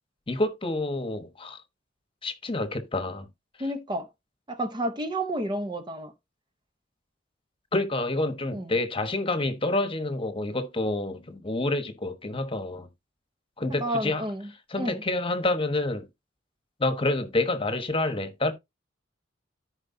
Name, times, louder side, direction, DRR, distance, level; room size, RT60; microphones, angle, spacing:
voice 1, 0.3-1.6 2.2-3.3 7.7-12.9 13.6-14.2 14.7-16.1 16.8-18.5, left 2 dB, 30° left, 1.2 m, -28 dB
voice 2, 3.6-4.1 4.5-6.1 8.5-8.7 13.8-14.5 14.8-15.0, right 1 dB, 25° right, 0.8 m, -30 dB
14.0 x 4.9 x 2.7 m
head